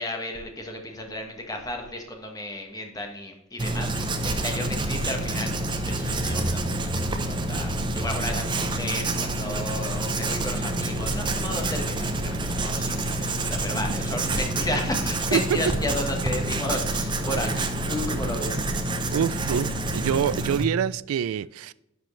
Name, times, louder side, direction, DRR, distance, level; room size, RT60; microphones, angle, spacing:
voice 1, 0.0-18.9, left 1 dB, 20° left, 1.2 m, -33 dB
Writing, 3.6-20.6, right 2 dB, 25° right, 0.7 m, -27 dB
voice 2, 19.1-21.7, right 8 dB, 90° right, 0.3 m, -26 dB
10.5 x 6.1 x 3.2 m
head